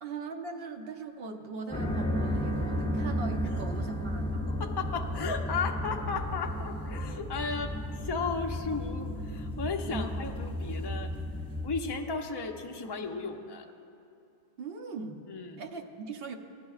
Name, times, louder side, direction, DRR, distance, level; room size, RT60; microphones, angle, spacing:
voice 1, 0.0-4.5 9.9-10.1 14.6-15.2 15.6-16.4, right 3 dB, 65° right, 4 dB, 0.9 m, -40 dB
sound 1, 1.7-11.7, equal, 5° left, 0.8 m, -33 dB
voice 2, 4.5-11.1 11.6-13.7 15.3-15.6, left 4 dB, 30° left, 3 dB, 0.5 m, -35 dB
16.5 x 11.0 x 2.4 m, 2.7 s
omnidirectional pair, 1.1 m